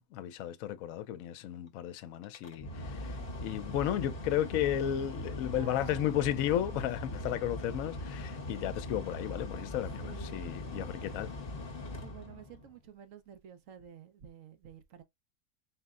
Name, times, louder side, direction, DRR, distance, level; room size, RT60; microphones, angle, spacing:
voice 1, 0.0-3.1 3.4-11.3, left 11 dB, 75° left, 1.0 m, -34 dB
Mechanical fan, 2.2-12.8, left 1 dB, 45° left, 1.0 m, -41 dB
voice 2, 2.6-3.3 4.6-4.7 5.5-6.2 10.0-10.5 11.0-11.3 12.0-15.0, right 8 dB, 70° right, 1.1 m, -52 dB
4.5 x 2.0 x 3.6 m
omnidirectional pair, 1.4 m